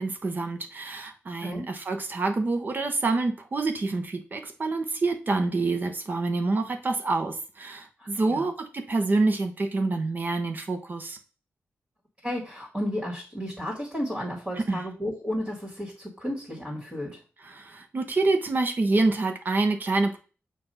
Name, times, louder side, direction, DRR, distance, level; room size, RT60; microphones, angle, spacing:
voice 1, 0.0-11.2 14.6-14.8 17.4-20.2, right 3 dB, 40° right, 5 dB, 0.9 m, -27 dB
voice 2, 8.0-8.5 12.2-17.2, equal, 15° right, -2 dB, 1.9 m, -33 dB
6.9 x 2.6 x 5.5 m, 0.36 s
wide cardioid pair, 115°, 5 cm